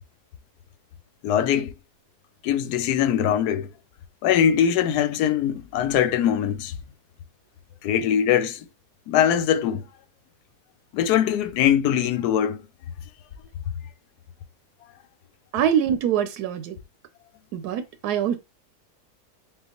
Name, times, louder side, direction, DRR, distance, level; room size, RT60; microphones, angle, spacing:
voice 1, 1.2-1.7 2.4-3.7 4.2-6.7 7.8-8.7 9.1-9.8 10.9-12.6, left 9 dB, 85° left, 1.1 m, -22 dB
voice 2, 15.5-16.8 17.5-18.4, right 9 dB, 85° right, 1.1 m, -24 dB
3.8 x 3.7 x 2.8 m
omnidirectional pair, 1.7 m